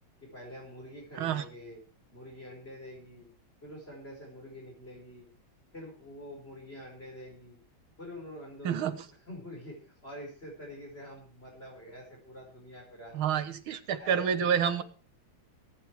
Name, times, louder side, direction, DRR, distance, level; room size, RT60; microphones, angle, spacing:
voice 1, 0.2-1.8 2.1-3.3 3.6-5.3 5.7-7.6 8.0-13.5 14.0-14.8, left 1 dB, 30° left, -2 dB, 5.2 m, -46 dB
voice 2, 8.6-9.0 13.1-14.8, right 8 dB, 80° right, 11 dB, 2.0 m, -28 dB
22.0 x 9.4 x 4.6 m, 0.35 s
omnidirectional pair, 2.2 m